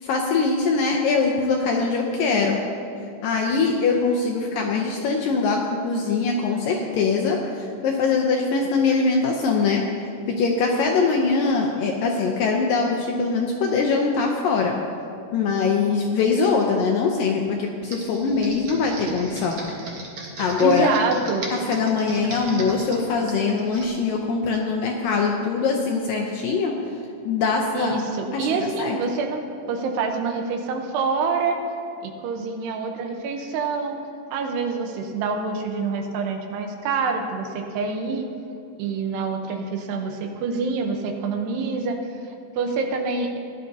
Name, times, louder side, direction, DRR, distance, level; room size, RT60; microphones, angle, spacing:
voice 1, 0.0-2.6 3.2-10.1 10.4-14.8 15.3-19.6 20.4-20.9 21.5-26.7 27.3-28.0 28.3-29.0, left 4 dB, 75° left, 0 dB, 2.1 m, -22 dB
Computer keyboard, 17.8-23.9, right 2 dB, 65° right, 1.3 m, -38 dB
voice 2, 20.6-21.5 27.7-31.6 32.0-34.0 34.3-38.3 38.8-42.0 42.6-43.4, right 4 dB, 85° right, 4 dB, 3.0 m, -26 dB
17.5 x 11.5 x 2.8 m, 2.5 s
omnidirectional pair, 4.7 m